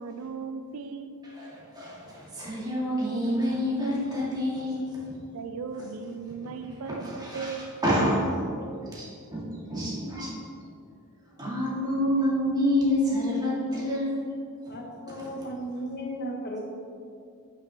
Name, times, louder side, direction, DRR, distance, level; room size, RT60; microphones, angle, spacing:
voice 1, 0.0-1.1 5.3-7.7, right 5 dB, 75° right, 8 dB, 0.5 m, -37 dB
voice 2, 1.3-5.1 6.4-6.5 6.8-8.4 8.9-10.4 11.4-14.2 14.6-14.7 15.1-15.3, equal, 20° right, -7 dB, 2.0 m, -28 dB
voice 3, 14.7-16.6, equal, 45° left, 0 dB, 1.1 m, -35 dB
9.0 x 5.9 x 3.4 m, 2.3 s
head